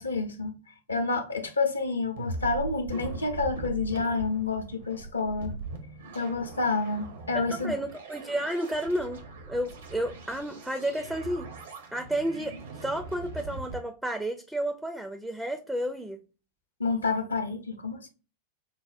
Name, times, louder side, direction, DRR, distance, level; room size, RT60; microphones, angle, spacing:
voice 1, 0.0-5.6 6.1-7.7 16.8-18.1, left 3 dB, 75° left, 0.6 m, -29 dB
sound 1, 2.2-13.8, right 3 dB, 65° right, 0.7 m, -40 dB
voice 2, 7.3-9.2 9.5-11.5 11.9-16.2, right 1 dB, 5° right, 0.4 m, -31 dB
5.3 x 2.0 x 2.4 m
figure-of-eight pair, 90°, 0 cm